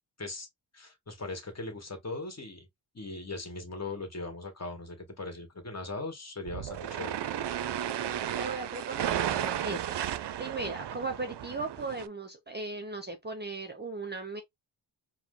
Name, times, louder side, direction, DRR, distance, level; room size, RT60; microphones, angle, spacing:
voice 1, 0.7-2.7 2.9-7.2, left 2 dB, 30° left, 1.6 m, -39 dB
sound 1, 6.5-12.1, right 10 dB, 60° right, 0.5 m, -34 dB
voice 2, 8.4-10.0 10.4-14.4, right 3 dB, 20° right, 0.7 m, -37 dB
4.8 x 2.2 x 3.7 m
wide cardioid pair, 115°, 48 cm